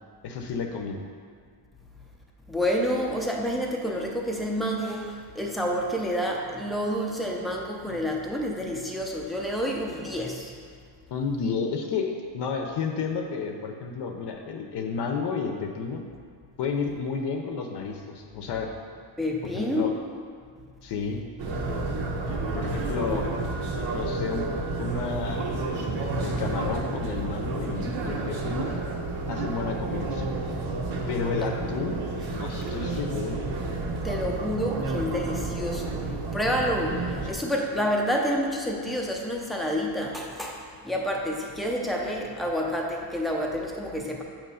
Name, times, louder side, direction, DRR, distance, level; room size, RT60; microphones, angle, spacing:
voice 1, 0.2-1.0 11.1-16.0 16.6-18.7 19.4-19.9 20.8-21.2 22.5-23.3 23.9-24.5 24.8-25.5 26.2-28.7 29.3-30.3 31.1-33.4, left 5 dB, 65° left, 3 dB, 0.6 m, -31 dB
voice 2, 2.5-10.5 19.2-20.0 22.1-22.2 23.1-23.2 31.4-31.5 34.0-44.2, equal, ahead, -1 dB, 0.4 m, -29 dB
sound 1, 21.4-37.3, right 2 dB, 85° right, 1.0 m, -30 dB
7.4 x 3.0 x 5.5 m, 2.1 s
cardioid pair, 180°, 45 cm